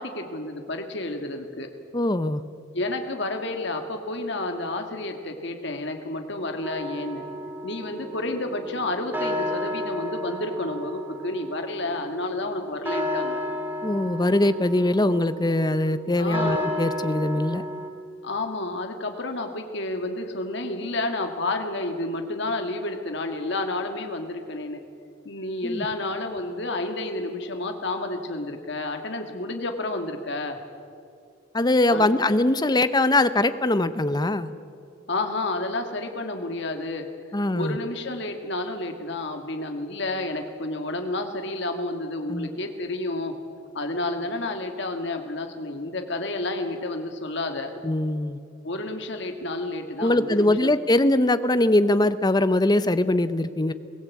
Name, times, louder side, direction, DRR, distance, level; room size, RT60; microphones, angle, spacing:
voice 1, 0.0-1.7 2.7-7.3 7.6-13.4 16.1-16.7 18.2-24.8 25.3-30.6 31.9-32.1 35.1-37.1 37.5-43.4 43.7-47.7 48.6-50.7, left 2 dB, 60° left, 5 dB, 1.8 m, -30 dB
voice 2, 1.9-2.4 13.8-17.6 25.6-25.8 31.5-34.5 37.3-37.8 42.3-42.5 47.8-48.4 50.0-53.7, left 1 dB, 20° left, 13 dB, 0.7 m, -22 dB
sound 1, 6.6-17.9, left 1 dB, 10° right, 2.4 m, -33 dB
23.0 x 17.0 x 8.4 m, 2.4 s
head